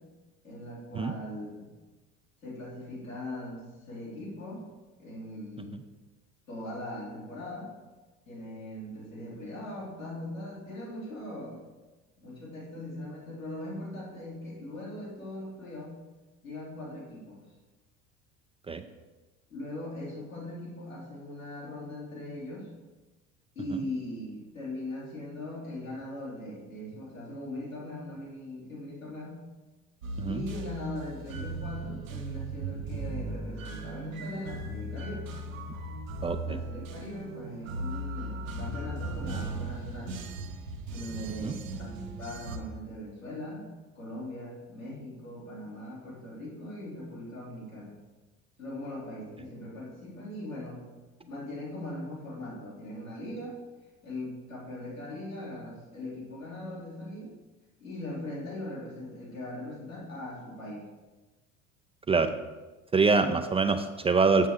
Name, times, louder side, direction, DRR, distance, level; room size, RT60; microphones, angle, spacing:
voice 1, 0.4-1.7 2.4-4.6 5.0-5.8 6.5-7.7 8.2-11.6 12.2-16.0 16.4-17.4 19.5-22.7 23.5-29.4 30.3-35.3 36.4-40.2 40.9-43.7 43.9-48.0 48.6-50.8 51.2-53.6 54.0-57.4 57.8-60.9 63.2-63.4, left 1 dB, 90° left, -7 dB, 2.9 m, -40 dB
sound 1, 30.0-42.6, right 2 dB, 75° right, 1.0 m, -37 dB
voice 2, 62.9-64.5, right 4 dB, 15° right, 8 dB, 0.4 m, -24 dB
8.0 x 7.2 x 3.6 m, 1.2 s
figure-of-eight pair, 65°, 40 cm